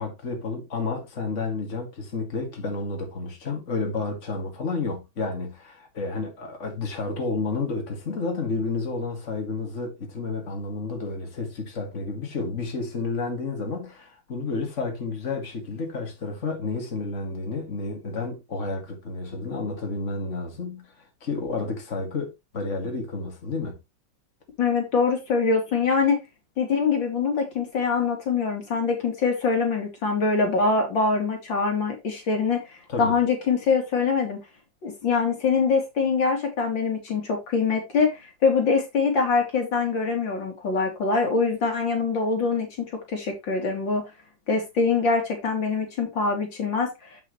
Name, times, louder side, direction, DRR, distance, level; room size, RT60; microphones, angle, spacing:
voice 1, 0.0-20.9 21.2-23.8 32.9-33.2, left 3 dB, 40° left, 2.5 m, -31 dB
voice 2, 24.6-26.2 26.6-34.4 34.8-44.1 44.5-47.2, left 4 dB, 85° left, 3.2 m, -24 dB
7.8 x 7.8 x 3.1 m
omnidirectional pair, 2.0 m